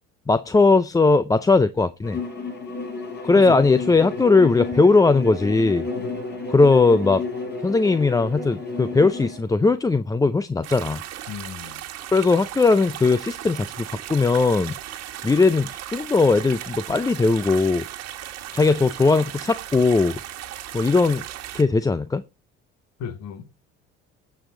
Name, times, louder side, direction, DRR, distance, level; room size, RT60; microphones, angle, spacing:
voice 1, 0.3-2.2 3.2-5.8 6.5-7.2 7.6-11.0 12.1-14.7 15.2-17.8 18.5-20.2 20.7-21.2 21.5-22.2, left 3 dB, 10° left, 0.5 m, -19 dB
Bowed string instrument, 2.0-9.4, left 3 dB, 35° left, 5.5 m, -32 dB
sound 1, 10.6-21.6, right 12 dB, 60° right, 1.5 m, -36 dB
voice 2, 11.3-11.8 23.0-23.5, left 7 dB, 60° left, 1.6 m, -35 dB
15.0 x 6.2 x 3.8 m
hypercardioid pair, 75°, 29 cm